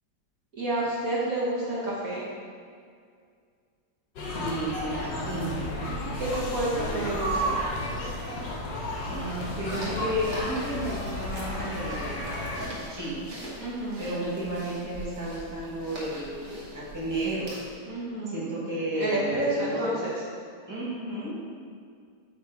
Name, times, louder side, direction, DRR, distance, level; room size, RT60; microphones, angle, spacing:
voice 1, 0.5-2.3 6.2-7.5 13.6-14.1 17.8-18.5 18.9-20.1, right 2 dB, 55° right, -7 dB, 1.3 m, -29 dB
sound 1, 4.2-12.6, left 1 dB, 70° left, 1.5 m, -32 dB
voice 2, 4.4-5.6 6.7-7.0 9.1-12.3 12.6-13.3 14.0-17.5 18.3-19.9 20.7-21.4, right 1 dB, 10° right, -7 dB, 1.2 m, -33 dB
sound 2, 8.9-17.8, equal, 75° right, 2.1 m, -42 dB
8.0 x 3.3 x 4.5 m, 2.1 s
omnidirectional pair, 2.0 m